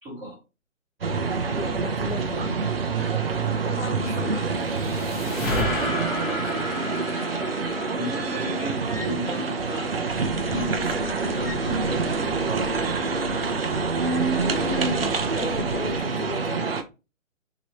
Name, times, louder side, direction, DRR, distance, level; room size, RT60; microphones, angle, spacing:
voice 1, 0.0-0.4 3.8-4.5 5.8-7.3 7.9-9.9 10.5-13.4, right 1 dB, 5° right, 1.2 m, -36 dB
sound 1, 1.0-16.8, right 4 dB, 50° right, 0.4 m, -26 dB
voice 2, 1.5-2.6 3.6-4.3 14.5-16.7, left 4 dB, 45° left, 0.5 m, -36 dB
sound 2, 4.2-9.6, left 1 dB, 30° left, 1.0 m, -32 dB
sound 3, 10.1-16.0, left 4 dB, 80° left, 0.7 m, -39 dB
2.9 x 2.8 x 2.9 m
hypercardioid pair, 165°, 40 cm